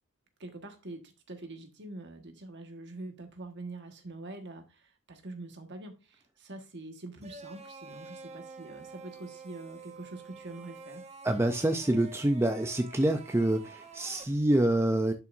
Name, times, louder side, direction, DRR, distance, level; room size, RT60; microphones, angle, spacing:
voice 1, 0.4-11.0, right 2 dB, 55° right, 1.5 m, -45 dB
sound 1, 7.2-14.2, right 3 dB, 30° right, 0.8 m, -48 dB
voice 2, 11.2-15.1, right 1 dB, 10° right, 0.5 m, -26 dB
11.0 x 5.6 x 2.6 m
head